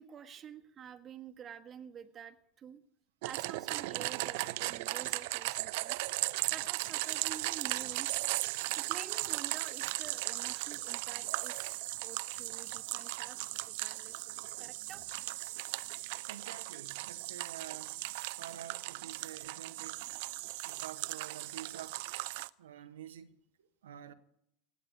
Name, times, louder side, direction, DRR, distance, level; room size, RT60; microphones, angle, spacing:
voice 1, 0.0-2.8 3.2-6.0 6.5-8.1 8.7-13.4 13.7-14.3 14.6-15.0 20.4-20.5 22.7-22.8, right 8 dB, 35° right, 1.5 m, -49 dB
sound 1, 3.2-22.5, right 21 dB, 65° right, 0.5 m, -37 dB
voice 2, 16.3-18.0 18.3-20.1 20.6-22.1 22.6-24.1, right 10 dB, 85° right, 1.1 m, -48 dB
17.5 x 7.6 x 9.5 m
hypercardioid pair, 90°, 0 cm